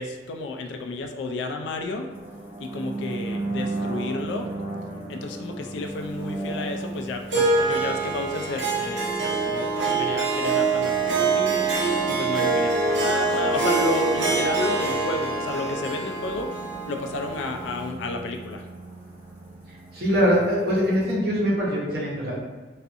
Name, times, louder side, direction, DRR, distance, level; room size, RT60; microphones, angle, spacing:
voice 1, 0.0-2.1 2.6-4.5 5.1-16.6 16.9-18.7, left 3 dB, 85° left, 4 dB, 0.3 m, -32 dB
sound 1, 2.1-21.1, right 2 dB, 15° right, 0.4 m, -37 dB
Harp, 7.3-17.9, right 4 dB, 85° right, 0.6 m, -25 dB
voice 2, 19.9-22.3, equal, 60° right, -6 dB, 0.8 m, -22 dB
2.4 x 2.4 x 2.5 m, 1.3 s
head